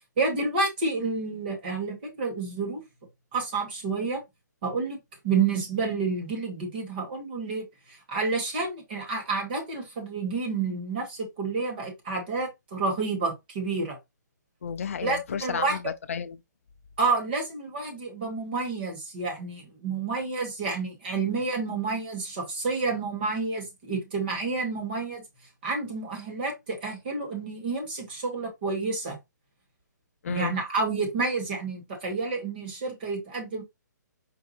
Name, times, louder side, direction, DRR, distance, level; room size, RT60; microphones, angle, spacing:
voice 1, 0.2-2.8 3.3-4.2 4.6-5.0 5.2-7.6 8.1-14.0 15.0-15.8 17.0-25.2 25.6-29.2 30.3-33.6, right 4 dB, 30° right, 1.5 m, -29 dB
voice 2, 14.6-16.4 30.2-30.6, left 7 dB, 45° left, 0.4 m, -32 dB
4.7 x 2.4 x 4.1 m
hypercardioid pair, 170°, 10 cm